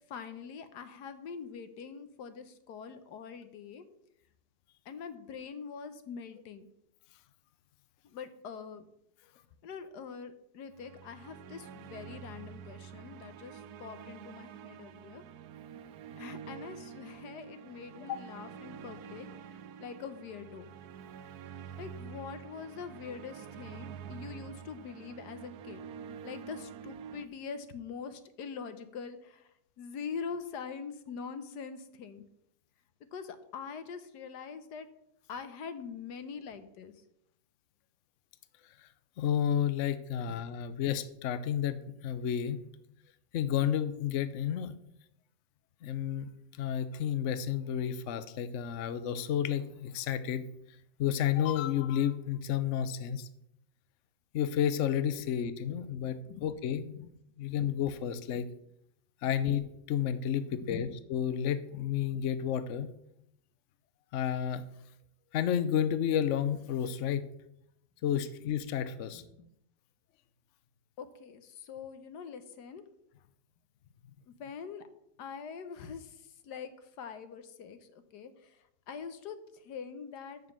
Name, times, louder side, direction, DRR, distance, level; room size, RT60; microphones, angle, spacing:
voice 1, 0.1-3.9 4.8-6.7 8.0-8.8 9.6-15.2 16.2-20.7 21.8-25.9 26.2-29.5 29.8-32.2 33.1-34.9 35.3-36.9 40.2-40.4 56.0-56.5 57.0-57.1 60.5-60.9 69.1-69.5 71.0-72.8 74.3-74.9 75.2-80.4, left 6 dB, 85° left, 10 dB, 1.5 m, -44 dB
sound 1, 10.7-27.3, right 8 dB, 75° right, 1.1 m, -47 dB
voice 2, 39.2-42.6 43.3-44.7 45.8-46.3 46.6-50.4 51.0-53.3 54.3-58.5 59.2-62.9 64.1-64.7 65.3-67.2 68.0-69.2, left 9 dB, 60° left, 12 dB, 0.9 m, -31 dB
7.1 x 6.3 x 7.3 m, 0.77 s
omnidirectional pair, 1.7 m